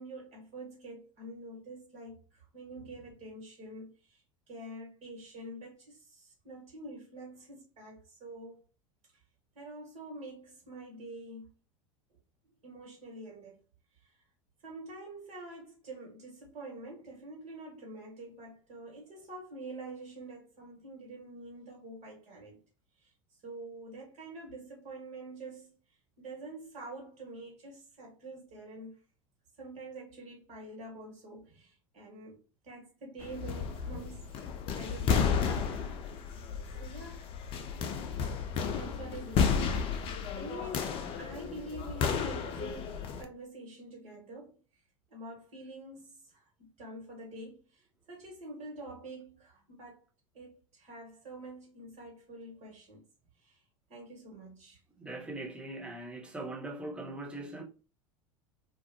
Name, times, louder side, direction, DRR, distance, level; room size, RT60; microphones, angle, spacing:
voice 1, 0.0-4.2 4.5-8.6 9.1-9.2 9.5-11.5 12.6-13.5 14.0-14.1 14.6-22.6 23.0-23.1 23.4-25.7 26.2-29.0 29.6-34.3 34.7-35.9 36.8-37.5 38.7-44.6 45.1-50.0 50.3-53.0 53.4-53.6 53.9-54.8, right 2 dB, 45° right, 1.3 m, -46 dB
sound 1, 33.2-43.2, left 6 dB, 35° left, 0.4 m, -32 dB
voice 2, 55.0-57.6, right 2 dB, 5° right, 0.6 m, -40 dB
2.3 x 2.1 x 2.6 m
figure-of-eight pair, 80°, 17 cm